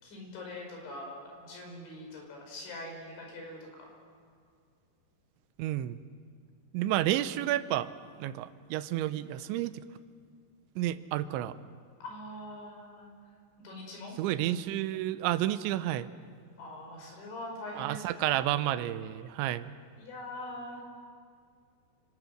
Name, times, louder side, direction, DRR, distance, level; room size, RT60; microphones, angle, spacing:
voice 1, 0.0-3.9 12.0-13.1 13.6-14.2 16.6-18.3 20.0-20.8, left 1 dB, 85° left, 1 dB, 7.6 m, -43 dB
voice 2, 5.6-6.0 6.7-7.9 8.2-9.8 10.8-11.5 14.2-16.1 17.8-19.7, right 13 dB, 85° right, 13 dB, 3.2 m, -30 dB
29.0 x 26.0 x 6.6 m, 2.2 s
omnidirectional pair, 5.2 m